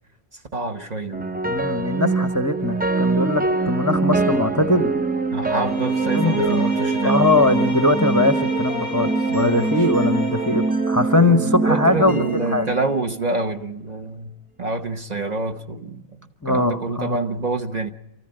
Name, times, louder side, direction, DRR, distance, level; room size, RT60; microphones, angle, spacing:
voice 1, 0.5-1.3 5.3-7.2 9.3-9.7 11.1-14.3 14.6-17.9, right 3 dB, 40° right, 1.1 m, -27 dB
sound 1, 1.1-13.4, right 3 dB, 10° right, 0.4 m, -23 dB
voice 2, 1.5-4.9 6.1-6.7 7.0-12.7 16.4-17.2, left 2 dB, 20° left, 0.8 m, -21 dB
Bowed string instrument, 5.6-10.8, left 3 dB, 65° right, 7.3 m, -33 dB
27.5 x 14.5 x 7.8 m
omnidirectional pair, 1.1 m